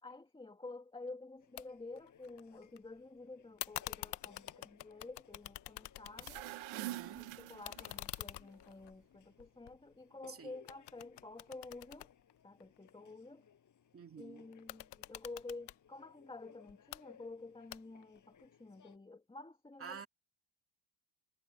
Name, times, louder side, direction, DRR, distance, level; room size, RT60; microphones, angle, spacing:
voice 1, 0.0-6.4 7.2-12.1 12.4-13.4 14.2-20.1, left 3 dB, 10° left, 2.3 m, -50 dB
sound 1, 1.4-19.0, left 8 dB, 40° left, 6.1 m, -64 dB
sound 2, 1.6-1.7 2.0-2.8 3.6-6.7 7.0-10.3 10.7-12.9 14.5-15.8 16.7-17.0 17.7-18.2, left 15 dB, 55° left, 0.8 m, -47 dB
sound 3, 6.0-8.2, right 15 dB, 85° right, 1.0 m, -45 dB
voice 2, 6.7-7.3 10.3-10.5 13.9-14.5 19.8-20.1, right 7 dB, 25° right, 2.5 m, -49 dB
cardioid pair, 160°, 48 cm